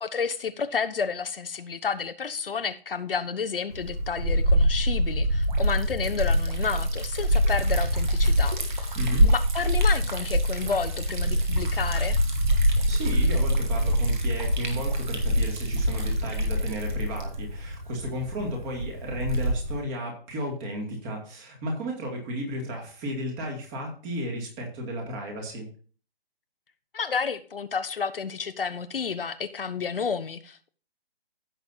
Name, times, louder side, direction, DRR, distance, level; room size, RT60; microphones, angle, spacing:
voice 1, 0.0-9.0 9.3-12.2 26.9-30.7, left 5 dB, 65° left, 1.0 m, -31 dB
Liquid, 3.7-19.8, equal, 50° right, 2.8 m, -25 dB
voice 2, 8.9-9.3 12.9-25.7, equal, 15° right, 2.2 m, -33 dB
15.5 x 6.7 x 2.7 m
figure-of-eight pair, 155°, 30 cm